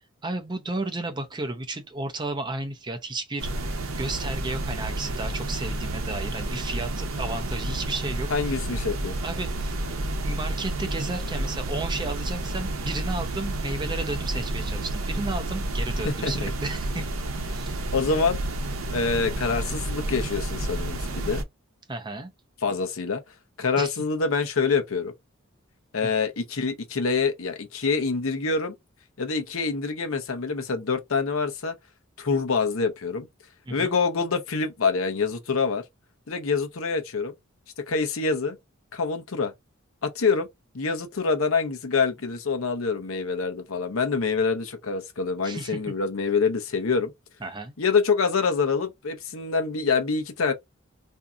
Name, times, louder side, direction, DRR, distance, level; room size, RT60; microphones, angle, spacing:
voice 1, 0.2-3.5 4.0-8.3 9.2-9.8 10.1-17.1 17.5-17.8 21.9-22.3 23.8-23.9 26.0-26.1 33.7-33.9 45.4-45.8 47.4-47.7, right 2 dB, 20° right, 0.6 m, -33 dB
sound 1, 3.4-21.4, right 1 dB, 80° right, 0.7 m, -30 dB
voice 2, 8.3-9.2 16.0-16.3 17.9-18.4 18.9-21.4 22.6-23.2 23.6-25.1 25.9-28.7 29.2-31.7 32.2-33.3 33.7-35.8 36.3-37.3 37.9-38.6 38.9-39.5 40.0-40.5 40.7-47.1 47.8-50.5, left 4 dB, 80° left, 0.7 m, -26 dB
2.7 x 2.4 x 3.7 m
head